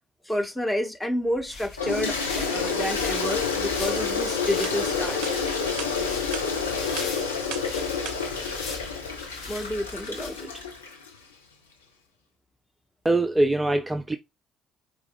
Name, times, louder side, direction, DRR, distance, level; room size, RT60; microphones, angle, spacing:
voice 1, 0.2-5.2 9.5-10.5, equal, 10° left, 1.2 m, -30 dB
sound 1, 1.3-10.8, left 4 dB, 65° left, 1.0 m, -40 dB
Toilet flush, 1.8-11.1, left 5 dB, 80° left, 0.6 m, -29 dB
sound 2, 4.6-4.8 5.2-5.4 5.8-5.9 6.3-6.5 7.0-7.1 7.5-7.7 8.1-8.2, right 8 dB, 65° right, 0.6 m, -36 dB
voice 2, 13.0-14.2, right 2 dB, 15° right, 0.5 m, -23 dB
4.7 x 3.1 x 2.5 m
figure-of-eight pair, 50°, 0 cm